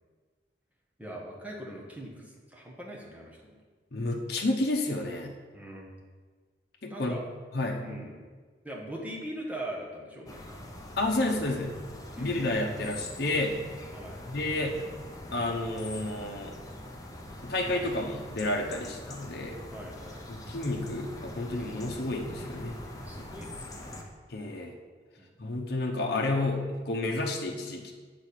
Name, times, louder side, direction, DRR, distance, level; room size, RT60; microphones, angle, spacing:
voice 1, 1.0-3.6 5.5-5.9 6.9-7.2 7.8-8.3 8.6-10.6 11.5-11.6 12.1-12.5 13.9-14.2 18.8-18.9 19.7-20.3 23.0-24.0 25.2-25.3, right 1 dB, 10° right, -2 dB, 1.2 m, -41 dB
voice 2, 3.9-5.4 6.8-7.2 7.5-7.9 11.0-11.7 12.2-13.6 14.3-14.8 15.3-16.5 17.4-19.6 20.3-22.8 24.3-24.7 25.4-27.9, left 2 dB, 60° left, 0 dB, 0.9 m, -30 dB
sound 1, 10.3-24.0, left 1 dB, 20° left, 0.8 m, -43 dB
7.5 x 4.3 x 6.6 m, 1.4 s
head